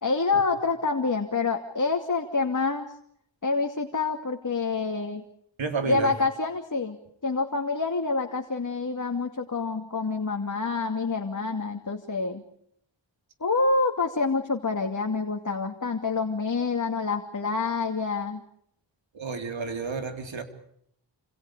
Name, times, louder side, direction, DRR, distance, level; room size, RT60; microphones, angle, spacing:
voice 1, 0.0-2.9 3.4-5.2 5.9-7.0 7.2-12.4 13.4-18.4, left 4 dB, 45° left, 3 dB, 2.6 m, -27 dB
voice 2, 5.6-6.1 19.1-20.4, right 4 dB, 85° right, 6 dB, 3.8 m, -31 dB
29.0 x 27.5 x 5.0 m, 0.70 s
wide cardioid pair, 90°, 44 cm